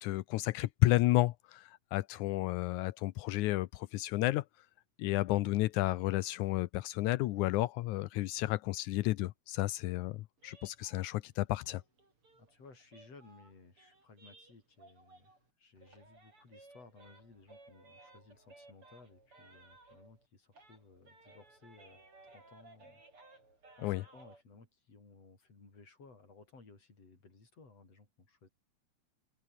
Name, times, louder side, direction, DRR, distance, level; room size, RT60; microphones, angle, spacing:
voice 1, 0.0-4.4 5.0-11.8 23.8-24.0, left 17 dB, 85° left, 2.1 m, -32 dB
sound 1, 10.4-15.5 15.8-20.3 20.5-24.4, right 2 dB, 45° right, 8.5 m, -60 dB
voice 2, 12.3-23.0 23.7-28.5, left 3 dB, 50° left, 7.7 m, -59 dB
open air
omnidirectional pair, 3.5 m